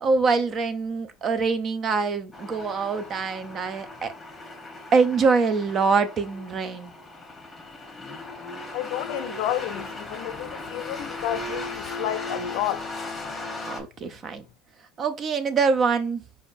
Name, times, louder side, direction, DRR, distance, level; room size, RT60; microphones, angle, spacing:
voice 1, 0.0-4.1 4.9-6.9 13.7-14.4 15.0-16.2, right 4 dB, 35° right, 0.5 m, -24 dB
sound 1, 2.3-13.8, left 2 dB, 15° left, 1.1 m, -37 dB
voice 2, 8.7-12.9, left 12 dB, 70° left, 0.4 m, -30 dB
5.0 x 2.5 x 2.6 m
supercardioid pair, 110°, 0 cm